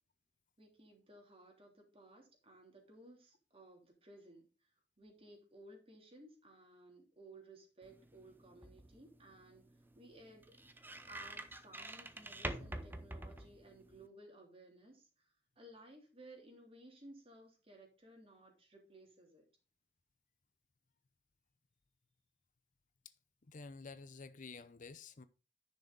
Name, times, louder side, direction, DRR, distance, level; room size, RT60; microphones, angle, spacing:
voice 1, 0.6-9.6 9.9-10.5 11.1-19.4, right 1 dB, 35° right, 3.3 m, -58 dB
sound 1, 7.8-14.1, right 1 dB, 10° right, 0.8 m, -48 dB
voice 2, 23.4-25.3, left 4 dB, 45° left, 0.6 m, -51 dB
10.5 x 6.3 x 3.8 m
head